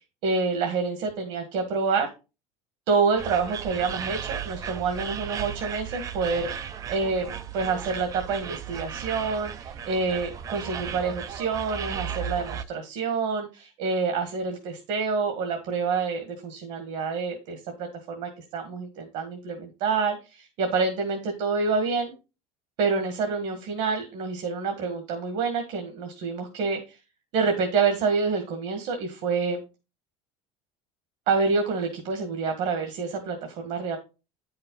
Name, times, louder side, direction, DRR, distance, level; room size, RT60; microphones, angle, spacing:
voice 1, 0.2-2.1 2.9-22.1 22.8-27.0 27.3-29.6 31.3-34.0, right 4 dB, 55° right, 4 dB, 1.6 m, -27 dB
sound 1, 3.2-12.6, right 8 dB, 25° right, 0.4 m, -35 dB
9.8 x 5.6 x 3.9 m, 0.30 s
cardioid pair, 175°, 14 cm